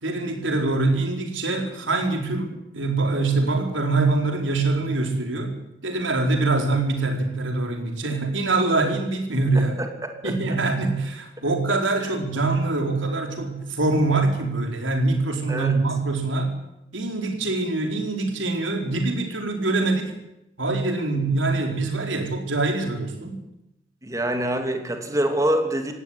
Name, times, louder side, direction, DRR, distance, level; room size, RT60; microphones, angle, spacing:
voice 1, 0.0-9.8 10.2-16.6 16.9-20.1 20.6-23.4, right 2 dB, 80° right, 3 dB, 4.5 m, -24 dB
voice 2, 9.5-10.3 12.0-12.1 15.5-15.7 24.0-25.9, right 1 dB, 15° right, 5 dB, 2.7 m, -25 dB
17.5 x 17.0 x 9.9 m, 0.85 s
head